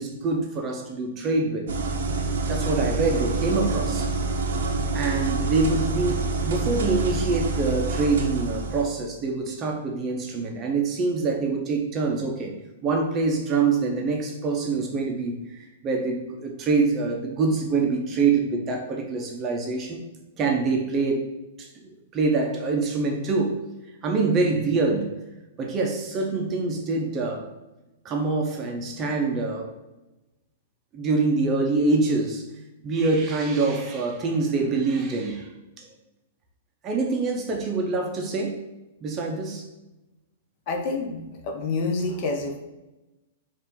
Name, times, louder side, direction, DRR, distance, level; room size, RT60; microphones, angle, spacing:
voice 1, 0.0-1.7 2.5-4.1 4.9-12.5 12.8-20.0 20.4-21.2 21.6-23.6 24.0-25.1 25.6-27.5 28.0-29.7 30.9-32.4 32.8-35.5 35.8-35.9 36.8-38.6 39.0-39.6, right 3 dB, 20° right, 1 dB, 0.5 m, -25 dB
gas-boiler, 1.7-8.8, right 3 dB, 75° right, 0.6 m, -27 dB
voice 2, 40.7-42.6, left 3 dB, 40° left, 3 dB, 0.6 m, -28 dB
4.2 x 2.5 x 3.6 m, 1.0 s
hypercardioid pair, 160°, 0 cm